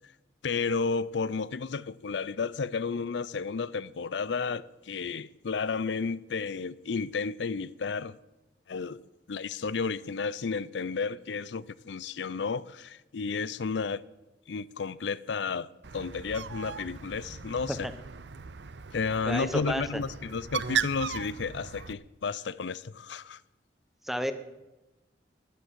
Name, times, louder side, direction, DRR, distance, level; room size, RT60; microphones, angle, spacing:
voice 1, 0.4-8.2 8.7-9.0 9.3-14.0 14.5-17.9 18.9-23.4, left 5 dB, 90° left, 0.5 m, -32 dB
Bird, 15.8-21.9, right 7 dB, 80° right, 0.6 m, -37 dB
voice 2, 19.2-20.0 24.0-24.3, equal, ahead, 1.0 m, -31 dB
12.5 x 10.5 x 7.5 m
head